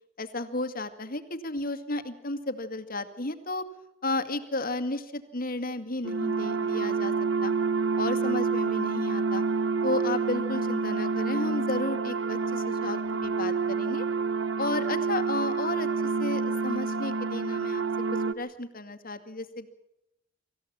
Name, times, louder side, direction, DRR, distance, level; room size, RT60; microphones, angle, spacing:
voice 1, 0.2-3.6 4.0-7.1 7.4-7.5 8.0-9.4 9.8-14.1 14.6-17.8 18.3-19.7, left 2 dB, 50° left, 10 dB, 2.1 m, -33 dB
sound 1, 6.0-18.3, right 4 dB, 75° right, 1.0 m, -28 dB
25.5 x 15.0 x 7.5 m, 0.88 s
head